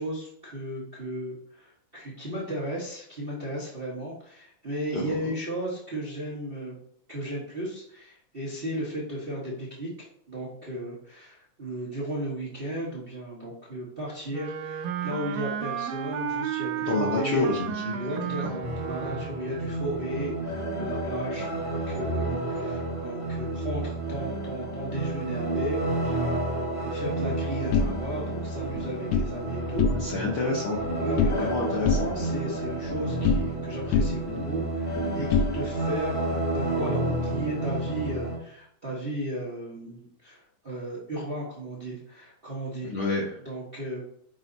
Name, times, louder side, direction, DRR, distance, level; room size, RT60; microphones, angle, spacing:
voice 1, 0.0-6.7 7.1-9.9 10.3-17.5 17.9-29.9 30.9-42.9 43.4-44.0, right 1 dB, 70° right, -5 dB, 0.5 m, -35 dB
voice 2, 4.9-5.3 16.9-17.9 18.2-18.6 30.0-30.8 31.4-32.0 42.8-43.2, left 3 dB, 70° left, -3 dB, 1.3 m, -28 dB
Wind instrument woodwind instrument, 14.3-19.6, right 8 dB, 85° right, 1.5 m, -33 dB
sound 1, 18.6-38.4, right 2 dB, 25° left, 0.6 m, -31 dB
sound 2, 27.7-29.3 29.7-30.4 30.6-31.5 31.9-33.7 33.9-36.0, left 5 dB, 85° left, 1.4 m, -27 dB
6.2 x 4.9 x 4.0 m, 0.67 s
omnidirectional pair, 3.7 m